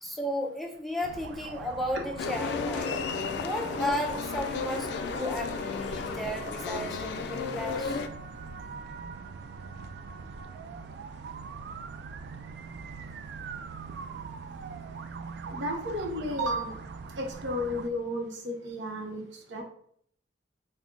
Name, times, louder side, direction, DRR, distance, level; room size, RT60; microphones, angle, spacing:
voice 1, 0.0-3.0 3.4-8.0, equal, ahead, 1 dB, 0.4 m, -34 dB
sound 1, 1.0-17.9, right 5 dB, 65° right, 0.3 m, -42 dB
sound 2, 2.2-8.1, left 5 dB, 65° left, 0.3 m, -33 dB
voice 2, 15.5-16.7 17.2-19.2 19.5-19.6, equal, 90° right, 3 dB, 0.7 m, -32 dB
3.7 x 2.1 x 3.6 m, 0.64 s
head